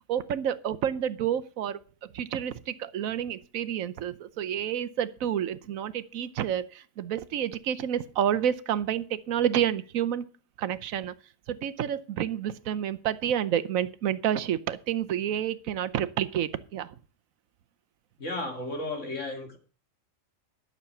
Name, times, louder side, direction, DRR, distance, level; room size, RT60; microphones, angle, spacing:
voice 1, 0.1-10.3 10.6-11.1 11.5-17.0, right 10 dB, 90° right, 13 dB, 1.2 m, -29 dB
voice 2, 18.2-19.6, left 2 dB, 65° left, 4 dB, 2.7 m, -34 dB
12.0 x 6.7 x 6.9 m, 0.39 s
omnidirectional pair, 1.4 m